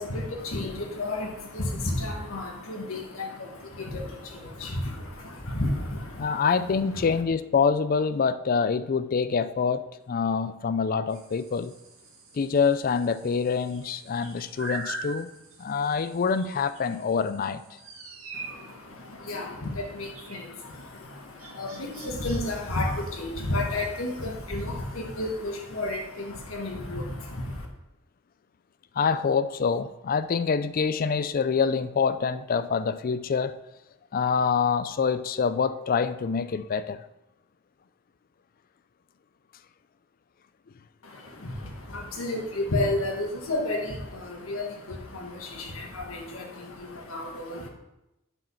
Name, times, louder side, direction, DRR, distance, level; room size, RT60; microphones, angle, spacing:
voice 1, 0.0-7.2 18.3-27.7 41.0-47.7, left 2 dB, 80° left, 1 dB, 1.7 m, -32 dB
voice 2, 6.2-9.8 10.1-11.7 12.3-15.3 15.6-17.6 29.0-33.5 34.1-37.0, left 5 dB, 45° left, 13 dB, 0.4 m, -26 dB
sound 1, 11.1-23.3, right 3 dB, 85° right, 1.9 m, -44 dB
7.7 x 4.9 x 5.7 m, 0.92 s
head